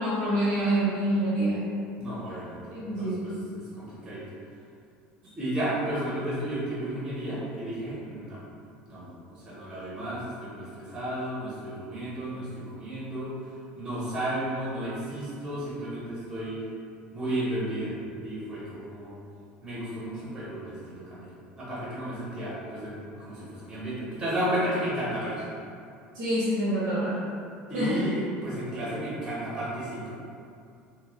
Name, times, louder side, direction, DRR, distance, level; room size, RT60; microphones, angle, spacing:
voice 1, 0.0-1.6 2.7-3.3 26.1-27.2 27.7-28.0, right 1 dB, 75° right, -10 dB, 0.7 m, -26 dB
voice 2, 2.0-4.2 5.4-8.4 8.9-13.3 13.8-16.6 17.1-17.9 18.2-19.2 19.6-21.3 21.5-25.5 27.7-30.1, right 1 dB, 15° right, -9 dB, 0.7 m, -33 dB
2.1 x 2.0 x 3.0 m, 2.4 s
cardioid pair, 125°, 4 cm